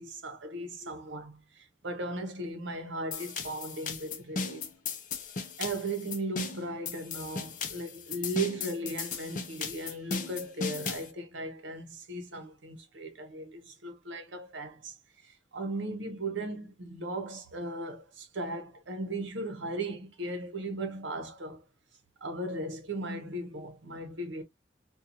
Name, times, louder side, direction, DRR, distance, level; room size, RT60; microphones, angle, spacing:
voice 1, 0.0-4.7 5.6-15.0 15.2-21.6 22.2-24.4, right 2 dB, 80° right, 0.8 m, -37 dB
sound 1, 3.1-11.1, left 5 dB, 40° left, 0.4 m, -36 dB
2.8 x 2.3 x 2.4 m
head